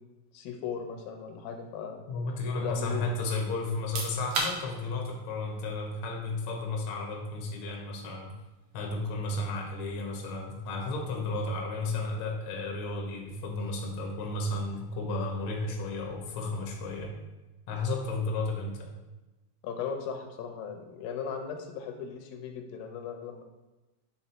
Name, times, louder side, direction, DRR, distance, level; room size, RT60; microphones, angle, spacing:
voice 1, 0.3-2.0 2.6-3.1 19.6-23.4, left 7 dB, 85° left, 4 dB, 2.5 m, -37 dB
voice 2, 2.1-8.3 8.7-17.1 17.7-18.9, left 2 dB, 65° left, 0 dB, 1.3 m, -33 dB
sound 1, 3.7-16.3, right 2 dB, 80° right, 1.2 m, -43 dB
6.9 x 3.7 x 4.3 m, 1.1 s
omnidirectional pair, 4.0 m